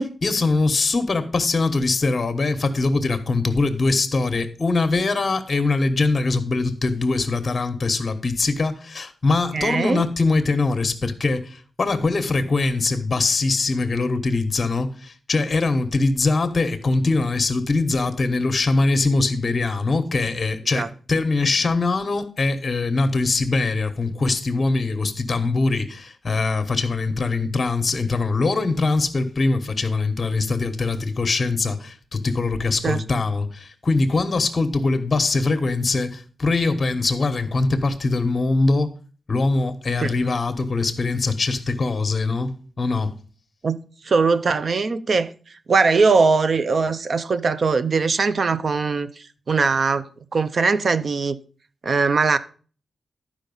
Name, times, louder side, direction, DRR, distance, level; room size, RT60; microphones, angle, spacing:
voice 1, 0.0-38.9 39.3-43.2, left 3 dB, 40° left, 1.2 m, -22 dB
voice 2, 9.5-10.0 20.7-20.9 32.8-33.0 40.0-40.1 43.6-45.3 45.7-51.3 51.8-52.4, right 4 dB, 55° right, 0.6 m, -21 dB
11.5 x 5.0 x 5.4 m
cardioid pair, 90°, 0 cm